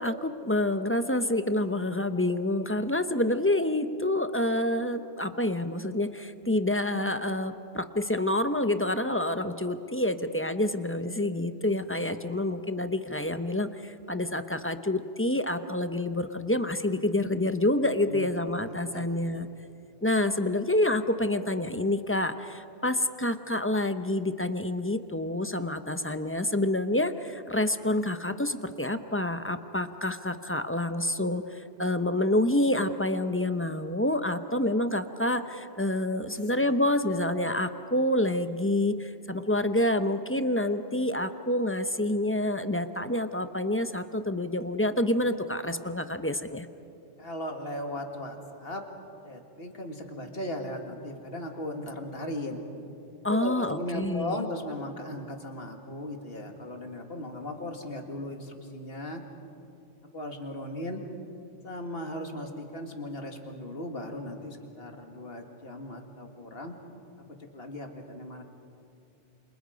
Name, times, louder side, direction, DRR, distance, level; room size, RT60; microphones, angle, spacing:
voice 1, 0.0-19.5 20.0-46.7 53.2-54.4, left 1 dB, 15° left, 9 dB, 0.6 m, -28 dB
voice 2, 18.7-19.1 36.3-36.5 47.2-48.9 49.2-52.6 53.3-59.2 60.1-61.0 61.6-66.7 67.5-68.4, left 1 dB, 55° left, 4 dB, 2.3 m, -37 dB
28.5 x 27.0 x 5.2 m, 2.6 s
omnidirectional pair, 1.2 m